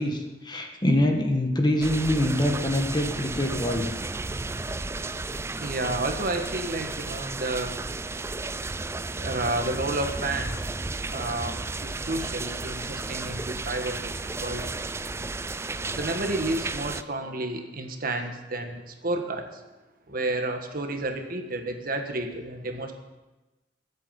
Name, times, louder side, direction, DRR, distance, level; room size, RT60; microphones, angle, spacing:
voice 1, 0.0-3.9, left 1 dB, 25° left, 3 dB, 1.6 m, -24 dB
sound 1, 1.8-17.0, right 3 dB, 15° right, 0.4 m, -33 dB
voice 2, 5.6-7.7 9.2-10.6 11.1-14.1 14.4-14.7 15.9-19.5 20.1-22.9, right 2 dB, 55° right, 5 dB, 1.6 m, -31 dB
21.5 x 8.5 x 5.4 m, 1.1 s
head